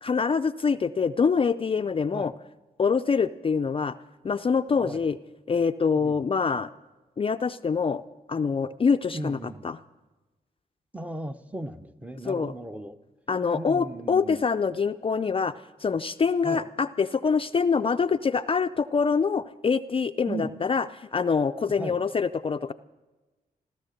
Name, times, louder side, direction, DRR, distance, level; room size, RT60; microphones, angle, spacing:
voice 1, 0.0-2.3 2.8-3.9 4.2-5.2 5.5-6.7 7.2-8.0 8.3-9.8 12.3-12.5 13.3-15.5 15.8-22.7, left 5 dB, 35° left, 9 dB, 0.4 m, -25 dB
voice 2, 9.1-9.7 10.9-13.0 13.5-14.4 16.4-16.7 20.3-20.6 21.8-22.0, right 1 dB, 10° right, 9 dB, 0.8 m, -36 dB
16.0 x 13.0 x 6.5 m, 1.1 s
cardioid pair, 75°, 17 cm